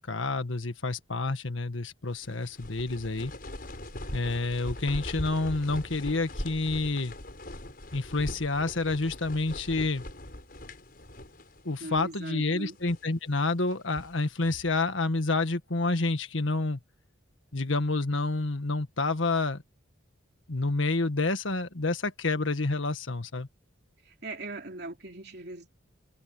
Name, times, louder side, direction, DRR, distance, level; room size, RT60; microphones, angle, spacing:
voice 1, 0.0-3.3 4.1-7.1 7.9-10.0 11.6-16.8 17.5-19.6 20.5-23.5, left 3 dB, 75° left, 1.7 m, -29 dB
sound 1, 2.1-11.7 11.9-12.0 12.6-13.1 13.7-14.8, left 1 dB, 45° left, 6.0 m, -41 dB
voice 2, 11.8-12.8 24.0-25.7, right 2 dB, 55° right, 3.4 m, -40 dB
head